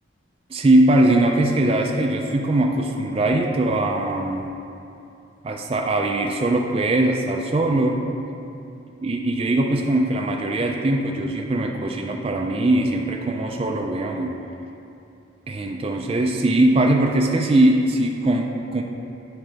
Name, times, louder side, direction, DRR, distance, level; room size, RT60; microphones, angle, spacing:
voice 1, 0.5-4.5 5.4-8.0 9.0-14.4 15.5-18.8, right 1 dB, 30° right, 1 dB, 0.3 m, -21 dB
11.0 x 3.9 x 3.4 m, 2.8 s
head